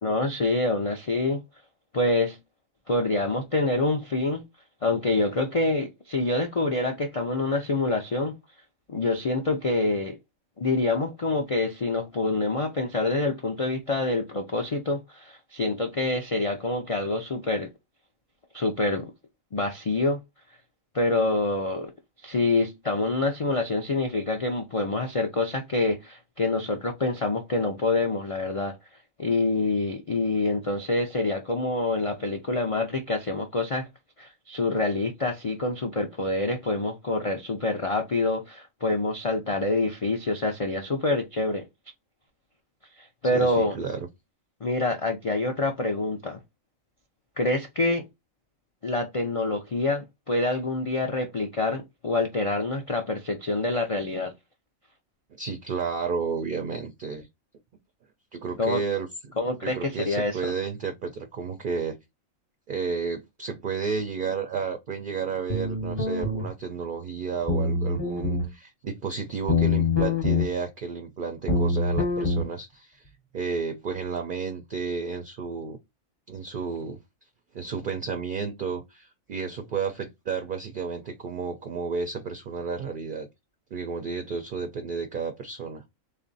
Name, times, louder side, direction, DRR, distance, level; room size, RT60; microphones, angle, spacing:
voice 1, 0.0-1.4 1.9-2.4 2.9-4.5 4.8-8.4 8.9-10.2 10.6-17.7 18.5-19.0 19.5-20.2 20.9-21.9 22.2-28.8 29.2-33.9 34.2-41.6 43.0-43.8 44.6-46.4 47.4-48.0 48.8-54.3 58.6-58.8 59.4-60.5, left 2 dB, 65° left, 0.3 m, -26 dB
voice 2, 43.3-44.1 55.4-57.3 58.3-59.1 59.6-62.0 62.7-75.8 76.3-77.0 77.5-83.3 83.7-85.8, right 5 dB, 55° right, 0.5 m, -32 dB
sound 1, 65.5-66.5 67.5-68.5 69.5-70.5 71.5-72.5, left 3 dB, 25° left, 0.7 m, -24 dB
3.4 x 2.5 x 3.8 m
omnidirectional pair, 1.4 m